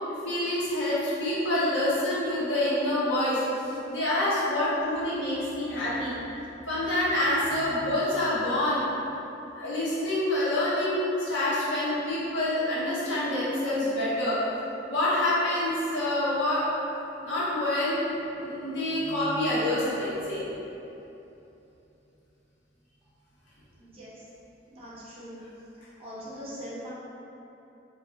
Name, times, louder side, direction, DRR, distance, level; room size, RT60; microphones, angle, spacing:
voice 1, 0.1-6.2 6.7-8.9 9.6-14.4 14.9-16.7 17.2-20.5, left 1 dB, 70° left, -9 dB, 0.9 m, -27 dB
voice 2, 23.8-24.2 24.7-25.4 25.8-26.9, equal, 30° right, -8 dB, 0.7 m, -42 dB
2.3 x 2.2 x 3.7 m, 2.9 s
head